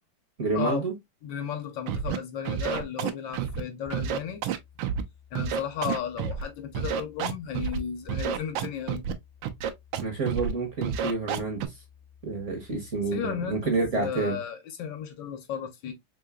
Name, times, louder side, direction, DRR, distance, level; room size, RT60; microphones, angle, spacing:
voice 1, 0.4-0.9 10.0-11.8 12.2-14.4, right 3 dB, 50° right, 1.0 m, -29 dB
voice 2, 1.2-4.4 5.3-9.0 13.1-15.9, left 8 dB, 70° left, 1.4 m, -34 dB
Scratching (performance technique), 1.9-2.2 2.4-3.6 3.9-5.0 5.3-6.4 6.7-7.8 8.1-9.1 9.4-10.0 10.3-10.5 10.8-11.6, right 8 dB, 75° right, 1.3 m, -29 dB
sound 1, 3.9-13.9, left 8 dB, 20° right, 0.3 m, -55 dB
3.7 x 3.7 x 2.2 m
omnidirectional pair, 2.2 m